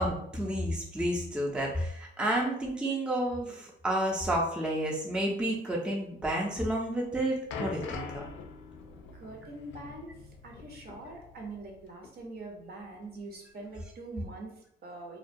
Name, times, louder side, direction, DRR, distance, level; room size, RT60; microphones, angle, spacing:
voice 1, 0.0-8.2, right 1 dB, 5° right, -2 dB, 0.5 m, -30 dB
sound 1, 6.9-11.8 12.0-12.2 12.9-13.0, left 4 dB, 75° left, 0.4 m, -43 dB
voice 2, 9.1-15.2, right 2 dB, 50° right, 1 dB, 0.7 m, -44 dB
2.2 x 2.2 x 2.6 m, 0.71 s
cardioid pair, 90°, 20 cm